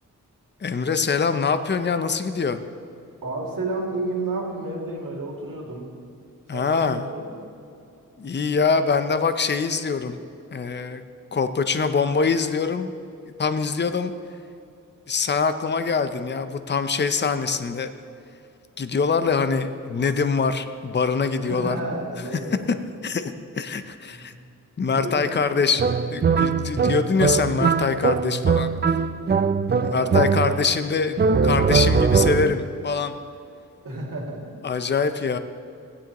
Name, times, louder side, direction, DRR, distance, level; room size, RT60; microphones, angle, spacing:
voice 1, 0.6-2.6 6.5-7.0 8.2-10.2 10.5-11.0 11.3-12.9 13.4-14.1 15.1-17.9 18.8-21.8 23.0-24.3 24.8-25.8 26.1-28.7 29.8-31.2 31.4-33.2 34.6-35.4, left 5 dB, 35° left, 10 dB, 0.6 m, -24 dB
voice 2, 3.2-5.9 6.5-7.3 21.4-22.6 24.1-24.4 24.8-25.6 29.7-30.6 33.8-34.5, right 2 dB, 75° right, -2 dB, 2.4 m, -31 dB
sound 1, 25.8-30.8 31.2-32.7, right 5 dB, 30° right, 0.4 m, -21 dB
16.5 x 9.8 x 3.0 m, 2.5 s
wide cardioid pair, 80°, 33 cm